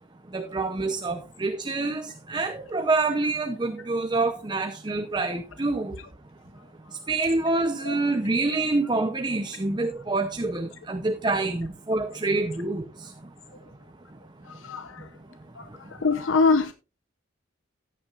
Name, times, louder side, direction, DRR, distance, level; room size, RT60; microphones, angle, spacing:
voice 1, 0.3-6.0 7.1-12.8, right 3 dB, 25° right, 0.7 m, -26 dB
voice 2, 14.6-15.1 15.6-15.7 16.0-16.7, left 4 dB, 80° left, 0.8 m, -23 dB
14.5 x 10.0 x 2.5 m
head